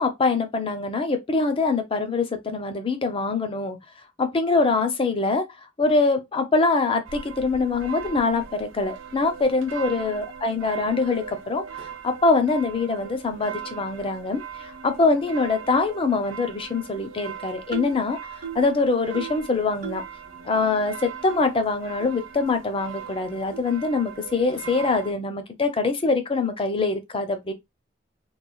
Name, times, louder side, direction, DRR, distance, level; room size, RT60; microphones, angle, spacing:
voice 1, 0.0-3.8 4.2-5.4 5.8-18.2 18.5-20.0 20.4-27.5, left 3 dB, 30° left, 0.5 m, -24 dB
sound 1, 7.0-25.1, right 7 dB, 85° right, 0.5 m, -40 dB
sound 2, 17.7-18.0 18.4-18.7 19.1-19.4 19.8-20.1 20.5-20.6 21.3-21.4 22.0-22.1 22.8-22.9 23.5-23.7, right 7 dB, 45° right, 0.8 m, -36 dB
3.1 x 2.2 x 2.2 m
head